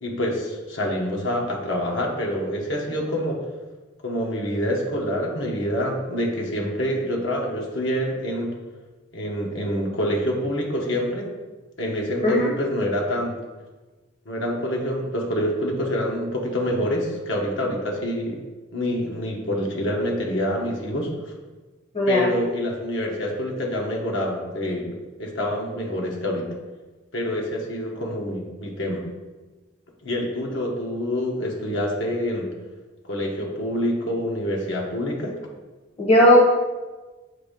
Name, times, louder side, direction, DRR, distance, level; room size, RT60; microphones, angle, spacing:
voice 1, 0.0-3.4 4.0-8.5 9.1-11.3 11.8-13.4 14.2-18.4 18.7-21.3 22.1-24.9 25.2-26.5 27.1-29.0 30.0-32.5 33.0-35.4, equal, 65° left, -1 dB, 1.2 m, -26 dB
voice 2, 21.9-22.3 36.0-36.5, equal, 30° left, -3 dB, 1.0 m, -16 dB
8.0 x 2.7 x 5.1 m, 1.3 s
head